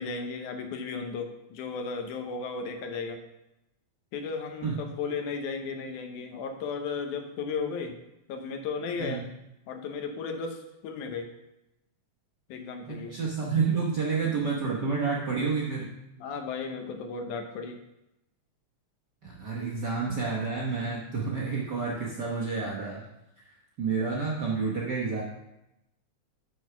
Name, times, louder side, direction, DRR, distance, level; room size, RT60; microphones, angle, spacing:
voice 1, 0.0-3.2 4.1-8.0 8.3-9.2 9.7-11.3 12.5-13.1 16.2-17.8, left 5 dB, 90° left, 5 dB, 2.4 m, -35 dB
voice 2, 12.9-15.9 19.2-23.0 23.8-25.2, right 5 dB, 60° right, -4 dB, 1.1 m, -29 dB
6.3 x 6.3 x 5.9 m, 0.89 s
omnidirectional pair, 3.4 m